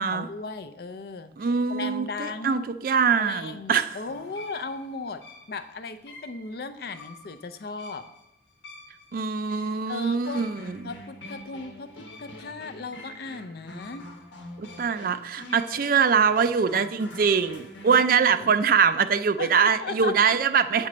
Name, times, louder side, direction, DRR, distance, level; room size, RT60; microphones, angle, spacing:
voice 1, 0.1-2.7 3.2-5.2 5.5-8.1 9.9-10.5 10.8-14.1 17.9-18.5 19.4-20.4, left 3 dB, 55° left, 9 dB, 0.5 m, -37 dB
voice 2, 1.4-3.9 9.1-10.9 14.6-20.9, right 6 dB, 50° right, 11 dB, 0.4 m, -23 dB
sound 1, 4.0-18.0, left 1 dB, 90° left, 1.1 m, -45 dB
7.5 x 4.4 x 6.1 m, 0.87 s
head